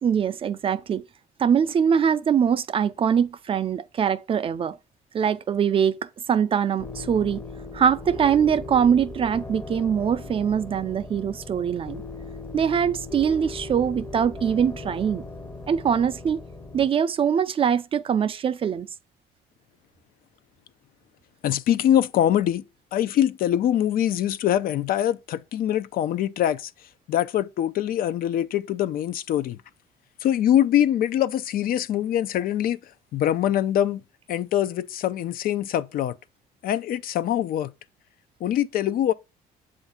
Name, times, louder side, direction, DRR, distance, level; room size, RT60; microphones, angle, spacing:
voice 1, 0.0-1.0 1.4-4.8 5.1-7.4 7.7-12.0 12.5-15.2 15.7-16.4 16.7-18.9, right 7 dB, 35° right, 0.3 m, -23 dB
sound 1, 6.8-16.9, left 2 dB, 15° left, 0.7 m, -38 dB
voice 2, 21.4-22.6 22.9-26.7 27.1-29.6 30.2-32.8 33.1-34.0 34.3-36.1 36.6-37.7 38.4-39.1, left 11 dB, 60° left, 0.4 m, -23 dB
7.1 x 2.5 x 5.5 m
cardioid pair, 110°, 17 cm